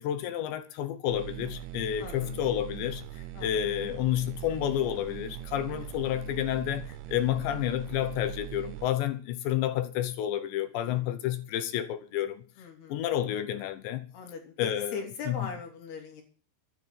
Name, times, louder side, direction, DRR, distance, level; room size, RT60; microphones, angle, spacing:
voice 1, 0.0-12.4 12.9-14.1 14.6-15.4, left 11 dB, 75° left, 2.9 m, -30 dB
sound 1, 1.1-8.9, right 15 dB, 80° right, 3.4 m, -41 dB
voice 2, 2.0-2.4 3.3-3.7 5.8-5.9 10.9-11.2 12.6-13.0 14.1-16.2, left 5 dB, 55° left, 4.9 m, -41 dB
13.0 x 9.8 x 7.5 m
omnidirectional pair, 5.8 m